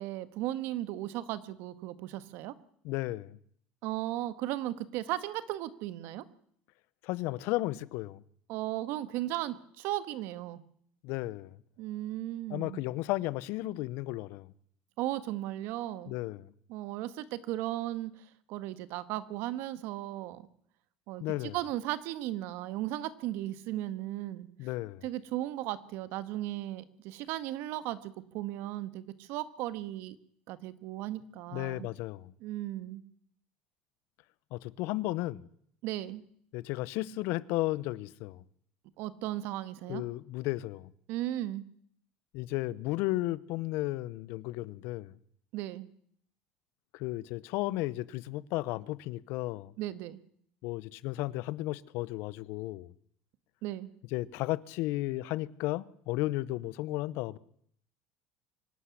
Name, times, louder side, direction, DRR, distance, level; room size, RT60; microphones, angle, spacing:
voice 1, 0.0-2.5 3.8-6.2 8.5-10.6 11.8-12.8 15.0-16.1 16.7-20.5 21.1-21.2 21.5-24.5 25.0-30.2 30.5-31.9 32.4-33.0 35.8-36.2 39.0-40.0 41.1-41.6 45.5-45.9 49.8-50.2 53.6-53.9, right 14 dB, 70° right, 1.5 m, -36 dB
voice 2, 2.8-3.4 7.0-8.2 11.0-11.6 12.5-14.5 16.1-16.5 21.2-21.6 24.6-25.0 31.5-32.3 34.5-35.5 36.5-38.4 39.9-40.9 42.3-45.1 46.9-49.7 50.6-52.9 54.1-57.4, left 18 dB, 70° left, 0.8 m, -34 dB
24.5 x 12.0 x 9.9 m
cardioid pair, 125°, 4 cm